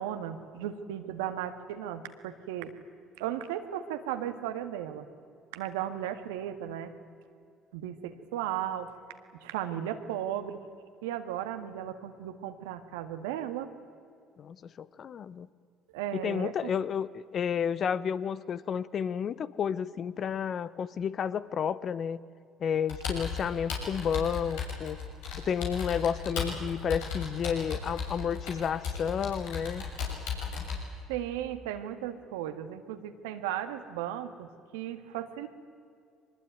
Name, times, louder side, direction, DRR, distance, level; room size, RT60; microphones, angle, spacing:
voice 1, 0.0-2.7 3.2-5.1 5.5-6.9 7.7-8.9 9.4-10.6 11.0-13.7 15.9-16.7 31.1-35.5, right 11 dB, 90° right, 9 dB, 1.7 m, -35 dB
voice 2, 14.4-15.5 16.1-22.2 22.6-25.0 25.4-29.8, left 7 dB, 50° left, 17 dB, 1.0 m, -31 dB
Computer keyboard, 22.9-30.8, left 5 dB, 80° left, 6.5 m, -36 dB
23.5 x 20.5 x 9.4 m, 2.4 s
supercardioid pair, 75°, 0 cm